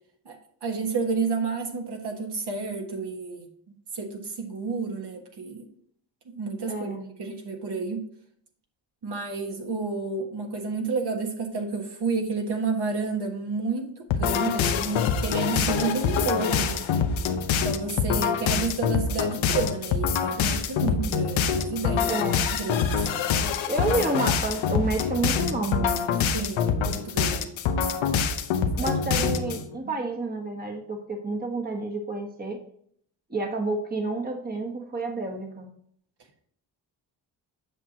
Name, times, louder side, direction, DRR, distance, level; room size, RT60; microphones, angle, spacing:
voice 1, 0.2-5.7 6.2-6.9 7.2-8.1 9.0-16.8 17.5-22.3 22.6-23.3 26.3-27.6 28.8-29.3 29.8-29.9, right 4 dB, 60° right, 2 dB, 1.5 m, -31 dB
voice 2, 6.7-7.1 22.1-22.5 23.7-26.2 28.8-32.6 33.3-35.7, right 2 dB, 20° right, 3 dB, 1.2 m, -29 dB
sound 1, 14.1-29.6, left 6 dB, 90° left, 0.8 m, -25 dB
8.1 x 5.9 x 2.8 m, 0.64 s
cardioid pair, 90°, 45 cm